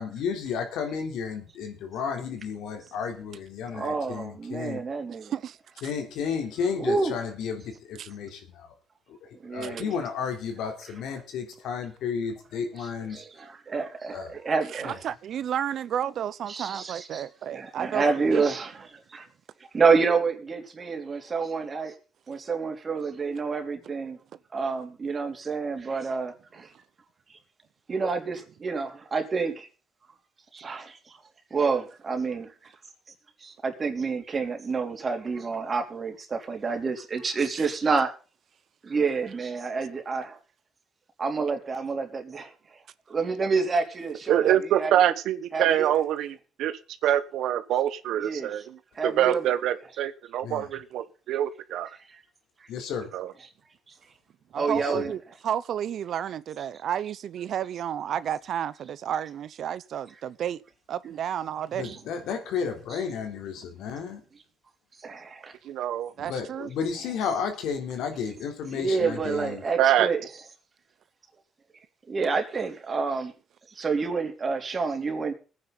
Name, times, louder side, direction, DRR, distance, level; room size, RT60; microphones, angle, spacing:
voice 1, 0.0-4.8 5.8-8.7 9.2-13.2 14.1-14.3 14.8-14.9 50.4-50.7 52.7-53.1 54.9-55.0 61.7-64.2 66.2-69.6, left 6 dB, 90° left, 3.5 m, -32 dB
voice 2, 3.7-5.3 6.8-7.1 9.4-9.9 12.8-15.0 16.5-17.2 17.5-19.3 19.7-21.9 22.3-24.2 24.5-26.7 27.3-27.4 27.9-29.7 30.5-31.2 31.5-32.7 33.4-38.1 38.8-40.4 41.2-42.5 43.1-45.1 45.5-46.0 48.2-48.6 48.9-49.5 52.1-52.2 54.5-55.1 62.9-63.0 65.0-65.5 68.7-70.2 72.1-73.3 73.7-75.3, right 4 dB, 40° right, 3.4 m, -28 dB
voice 3, 14.7-18.0 18.3-18.4 37.6-37.7 54.5-60.6 60.9-62.0 66.2-66.7, right 9 dB, 70° right, 0.7 m, -32 dB
voice 4, 44.3-51.9 53.1-53.3 65.6-66.1 69.8-70.1, right 11 dB, 85° right, 1.1 m, -25 dB
20.5 x 9.6 x 4.1 m
cardioid pair, 90°, 0 cm